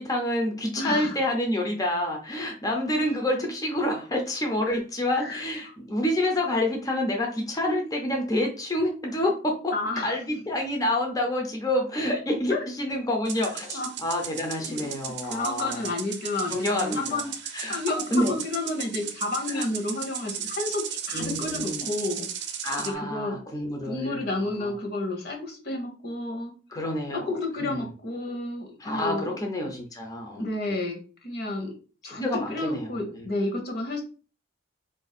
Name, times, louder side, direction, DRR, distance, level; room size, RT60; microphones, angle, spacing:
voice 1, 0.0-9.7 10.0-15.9 16.5-17.2 17.5-17.8 18.1-18.3 19.5-19.7 21.1-21.9 22.6-24.2 24.6-24.7 26.7-27.8 28.8-30.5 32.1-33.3, left 1 dB, 20° left, 1 dB, 0.6 m, -28 dB
voice 2, 0.8-1.2 4.6-4.8 5.2-5.4 9.7-10.1 12.5-12.7 13.7-13.9 14.7-14.9 15.3-17.3 17.7-22.3 22.8-23.4 23.8-26.5 27.1-29.4 30.4-31.7 32.0-34.0, left 2 dB, 55° left, 2 dB, 1.0 m, -31 dB
sound 1, 13.2-22.9, right 8 dB, 60° right, 0.5 m, -36 dB
3.4 x 2.6 x 4.1 m, 0.37 s
head